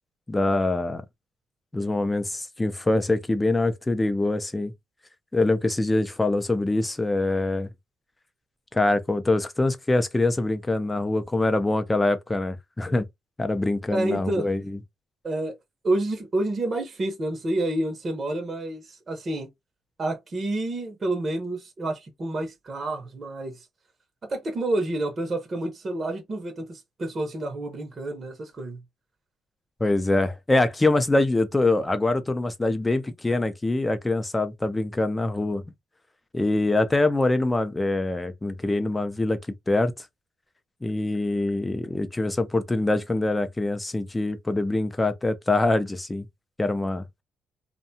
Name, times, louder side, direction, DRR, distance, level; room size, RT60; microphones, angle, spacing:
voice 1, 0.3-1.0 1.7-4.7 5.3-7.7 8.7-13.1 13.4-14.8 29.8-35.6 36.3-39.4 39.7-39.9 40.8-46.2 46.6-47.0, left 2 dB, 15° left, 0.5 m, -24 dB
voice 2, 13.9-14.5 15.2-15.6 15.8-19.5 20.0-23.7 24.2-28.8, right 2 dB, 40° right, 0.8 m, -29 dB
2.7 x 2.2 x 2.6 m
cardioid pair, 90°, 0 cm